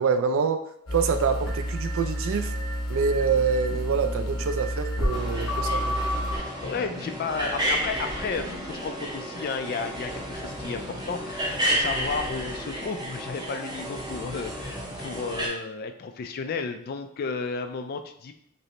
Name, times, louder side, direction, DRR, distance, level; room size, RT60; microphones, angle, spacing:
voice 1, 0.0-2.5 2.9-6.0, right 5 dB, 65° right, 9 dB, 0.3 m, -26 dB
sound 1, 0.9-6.4, equal, 70° left, 1.1 m, -29 dB
sound 2, 5.1-15.5, equal, 20° right, 0.7 m, -32 dB
voice 2, 6.4-18.3, left 5 dB, 45° left, 8 dB, 0.3 m, -33 dB
5.2 x 2.1 x 2.9 m, 0.70 s
head